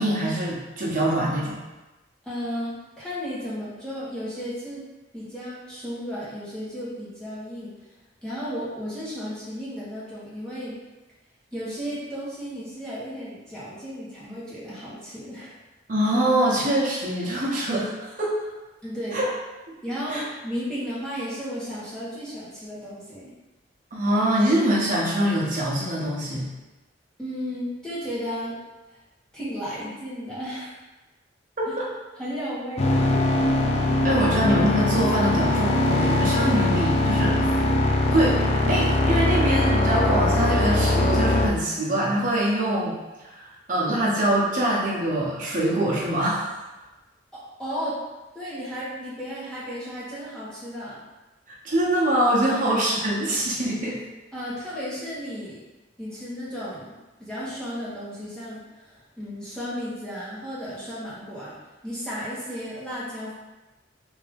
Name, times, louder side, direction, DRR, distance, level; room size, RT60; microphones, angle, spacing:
voice 1, 0.0-1.6 15.9-18.3 19.1-19.3 20.1-20.2 23.9-26.5 31.6-31.9 33.9-37.5 38.0-43.0 43.3-46.6 51.6-54.0, right 1 dB, 45° right, -5 dB, 0.9 m, -24 dB
voice 2, 2.2-4.8 5.1-7.7 8.2-10.8 11.5-15.6 18.8-19.2 19.8-23.3 27.2-28.6 29.3-30.7 31.7-31.8 32.2-33.2 47.3-48.0 48.3-51.0 52.5-52.6 54.3-55.6 56.0-61.6 61.8-63.3, equal, 5° left, -10 dB, 1.1 m, -34 dB
sound 1, 32.8-41.5, left 2 dB, 35° left, 0.4 m, -21 dB
3.5 x 2.7 x 3.5 m, 1.1 s
head